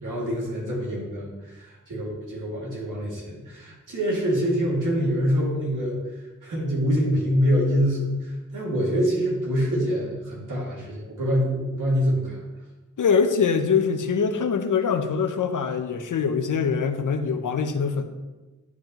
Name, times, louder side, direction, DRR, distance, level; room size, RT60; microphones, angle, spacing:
voice 1, 0.0-6.0 6.4-12.4, equal, 80° right, -4 dB, 2.4 m, -25 dB
voice 2, 13.0-18.0, left 6 dB, 75° left, 8 dB, 0.7 m, -23 dB
10.5 x 5.7 x 3.0 m, 1.2 s
cardioid pair, 55°, 31 cm